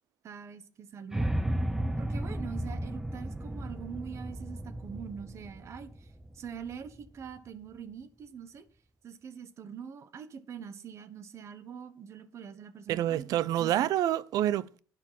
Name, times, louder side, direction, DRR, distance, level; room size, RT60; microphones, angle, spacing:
voice 1, 0.2-1.3 2.0-6.1 6.3-8.7 9.0-13.3 13.6-13.7, right 7 dB, 50° right, 1.2 m, -44 dB
sound 1, 1.1-7.2, right 1 dB, 5° right, 0.6 m, -34 dB
voice 2, 12.9-14.8, right 12 dB, 75° right, 0.5 m, -28 dB
10.5 x 6.0 x 7.3 m
cardioid pair, 140°, 6 cm